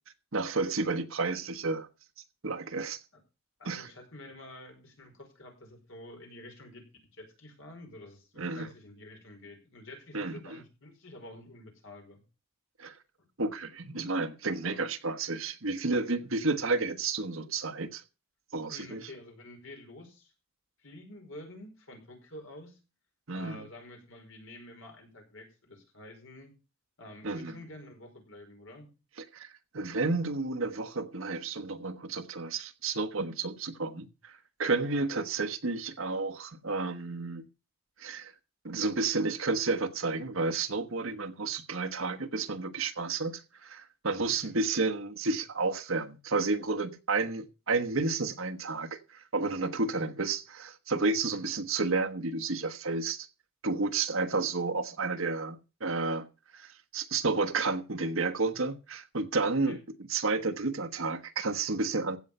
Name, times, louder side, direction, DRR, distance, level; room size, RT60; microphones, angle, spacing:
voice 1, 0.3-1.9 2.4-3.0 3.6-3.9 8.4-8.7 10.1-10.6 12.8-13.0 13.4-18.0 18.5-19.1 23.3-23.6 27.2-27.6 29.3-37.4 38.0-38.3 38.6-53.3 53.6-56.3 56.5-59.8 60.1-62.2, right 3 dB, 65° right, 1.3 m, -31 dB
voice 2, 3.6-6.8 7.1-12.2 13.2-13.3 14.5-14.8 18.7-20.3 20.8-22.8 23.3-26.5 27.0-28.9 34.9-35.0 44.4-44.5 51.2-51.4 59.5-59.8, left 1 dB, 60° left, 4.9 m, -49 dB
15.5 x 7.3 x 5.5 m
head